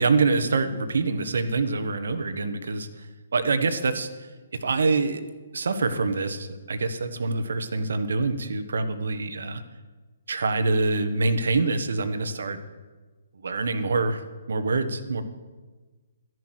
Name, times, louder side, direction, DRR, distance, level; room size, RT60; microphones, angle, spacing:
voice 1, 0.0-3.1 3.3-4.1 4.5-5.2 5.5-9.6 10.3-12.6 13.4-15.2, right 3 dB, 60° right, 11 dB, 1.3 m, -25 dB
13.5 x 11.0 x 6.4 m, 1.3 s
figure-of-eight pair, 130°, 0 cm